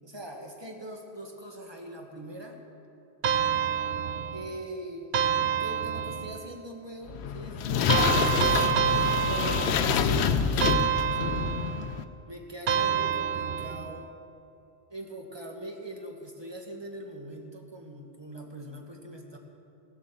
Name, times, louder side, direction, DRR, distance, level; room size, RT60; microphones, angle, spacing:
voice 1, 0.0-2.6 4.3-5.2 5.6-8.9 9.2-11.4 12.3-14.1 14.9-19.4, right 1 dB, 25° right, 1 dB, 1.5 m, -41 dB
sound 1, 3.2-4.6 5.1-6.5 7.9-10.1 10.6-11.9 12.7-14.0, right 8 dB, 60° right, 0.7 m, -27 dB
sound 2, 7.1-12.0, left 7 dB, 85° left, 0.9 m, -27 dB
17.0 x 7.4 x 7.3 m, 2.7 s
omnidirectional pair, 1.1 m